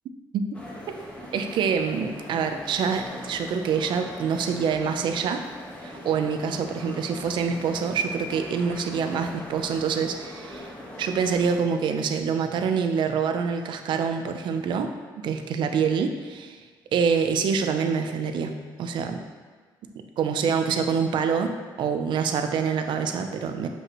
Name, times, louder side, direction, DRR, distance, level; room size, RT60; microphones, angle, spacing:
sound 1, 0.5-11.6, left 1 dB, 15° left, 1.3 m, -41 dB
voice 1, 1.3-5.4 5.8-10.7 11.0-14.9 15.2-16.6 16.9-19.2 20.2-23.7, right 6 dB, 70° right, 6 dB, 0.6 m, -26 dB
7.7 x 5.3 x 3.1 m, 1.5 s
cardioid pair, 105°, 8 cm